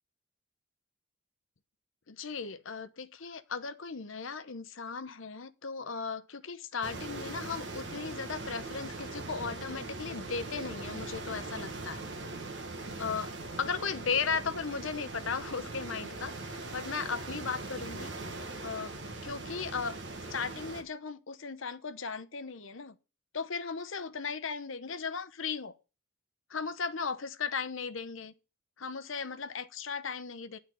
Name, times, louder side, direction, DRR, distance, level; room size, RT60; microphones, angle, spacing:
voice 1, 2.1-12.1 13.0-13.3 13.6-18.1 18.6-18.9 19.2-20.0 20.3-23.0 23.3-25.7 26.5-28.3 28.8-30.6, left 5 dB, 70° left, 0.8 m, -36 dB
sound 1, 6.8-20.8, right 2 dB, 55° right, 1.3 m, -41 dB
10.5 x 4.0 x 7.6 m
head